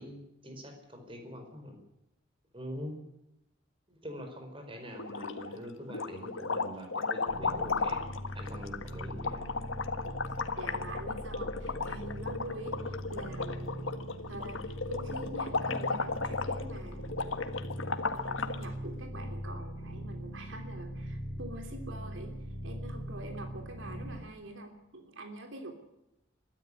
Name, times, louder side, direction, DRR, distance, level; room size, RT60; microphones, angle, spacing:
voice 1, 0.0-1.8 2.5-3.0 3.9-8.0 8.3-9.5, equal, 25° right, 4 dB, 4.6 m, -44 dB
sound 1, 5.0-5.6 5.9-18.6, left 4 dB, 85° left, 1.7 m, -35 dB
sound 2, 7.3-24.2, equal, 20° left, 6.5 m, -41 dB
voice 2, 10.0-13.9 14.3-17.3 18.1-22.3 22.6-25.7, right 1 dB, 75° right, 4 dB, 3.2 m, -45 dB
22.0 x 13.5 x 9.9 m, 0.88 s
head